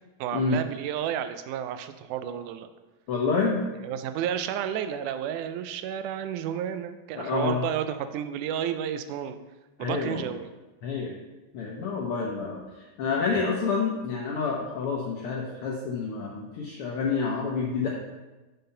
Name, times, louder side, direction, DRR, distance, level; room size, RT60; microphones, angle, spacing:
voice 1, 0.2-2.7 3.8-9.4 9.8-10.5, right 9 dB, 90° right, 10 dB, 2.1 m, -31 dB
voice 2, 3.1-3.6 7.2-7.6 9.8-10.3 10.8-11.1 11.5-17.9, left 5 dB, 80° left, -1 dB, 1.2 m, -28 dB
5.6 x 5.5 x 5.5 m, 1.1 s
omnidirectional pair, 3.5 m